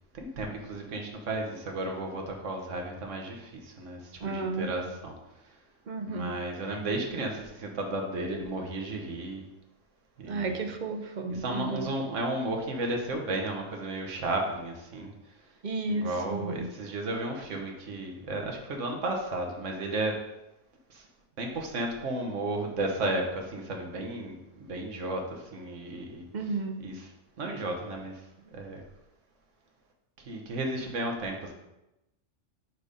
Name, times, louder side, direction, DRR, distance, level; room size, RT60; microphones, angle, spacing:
voice 1, 0.1-5.1 6.1-9.5 10.2-10.6 11.3-15.1 15.9-20.2 20.9-21.0 21.4-26.3 26.8-27.1 27.4-28.2 28.5-28.8 30.2-31.5, right 2 dB, 80° right, 1 dB, 1.4 m, -33 dB
voice 2, 4.2-4.7 5.9-6.4 10.3-11.9 15.6-16.7 26.3-26.8, right 3 dB, 50° right, 5 dB, 0.6 m, -33 dB
4.8 x 4.7 x 5.2 m, 0.94 s
omnidirectional pair, 1.3 m